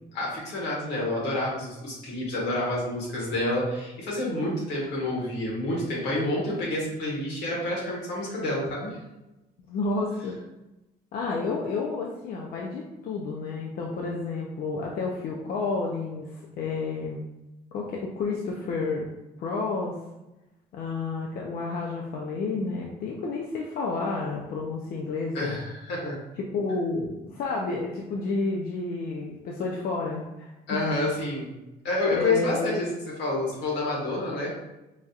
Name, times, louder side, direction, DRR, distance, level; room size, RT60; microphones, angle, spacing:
voice 1, 0.1-9.0 25.3-26.2 30.7-31.5 31.8-34.5, left 2 dB, 90° left, -4 dB, 1.4 m, -28 dB
voice 2, 9.7-10.4 11.1-17.2 17.7-19.1 19.4-20.0 20.7-25.6 26.4-30.8 32.1-32.8, left 3 dB, 60° left, -1 dB, 0.5 m, -30 dB
4.7 x 2.7 x 2.4 m, 0.97 s
cardioid pair, 110°, 17 cm